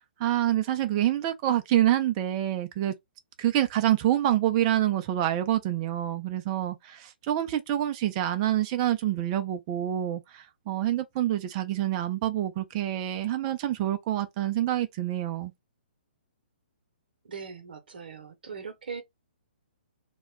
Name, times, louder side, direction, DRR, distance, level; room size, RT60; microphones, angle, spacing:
voice 1, 0.0-2.9 3.4-15.5, right 12 dB, 30° right, 0.4 m, -27 dB
voice 2, 17.2-19.0, right 6 dB, 65° right, 0.8 m, -40 dB
2.2 x 2.1 x 3.4 m
figure-of-eight pair, 130°, 6 cm